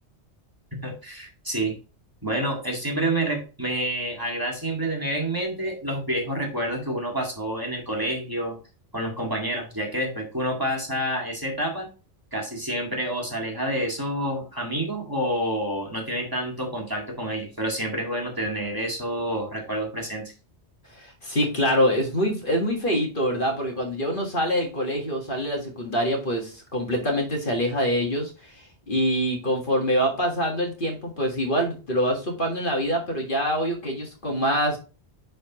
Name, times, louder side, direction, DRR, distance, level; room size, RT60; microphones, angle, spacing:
voice 1, 0.8-1.7 2.2-8.6 8.9-11.9 12.3-20.3, right 1 dB, 20° right, -1 dB, 1.9 m, -28 dB
voice 2, 20.9-34.8, equal, 50° left, 1 dB, 1.8 m, -25 dB
9.8 x 4.3 x 3.0 m, 0.34 s
omnidirectional pair, 1.1 m